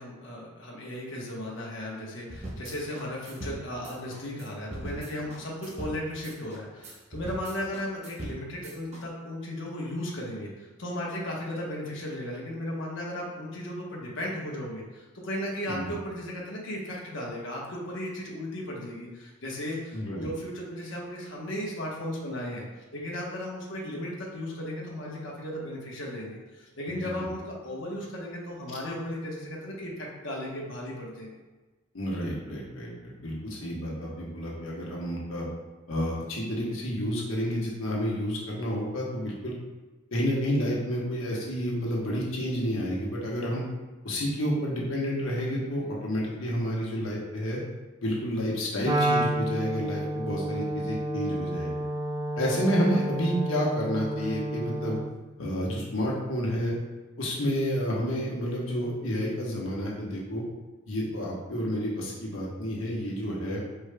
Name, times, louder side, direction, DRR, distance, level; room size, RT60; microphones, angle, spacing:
voice 1, 0.0-31.4, left 1 dB, 65° left, -3 dB, 1.0 m, -36 dB
sound 1, 2.3-9.0, right 1 dB, 35° right, 0.8 m, -41 dB
voice 2, 19.9-20.3 26.9-27.3 31.9-35.5 35.9-39.5 40.1-43.6 44.0-47.6 48.0-51.7 52.4-55.0 55.4-56.7 57.2-60.4 60.9-63.6, equal, 85° left, -3 dB, 1.2 m, -30 dB
Wind instrument woodwind instrument, 48.8-55.2, right 1 dB, 20° right, 0.3 m, -30 dB
4.9 x 4.5 x 2.2 m, 1.2 s
head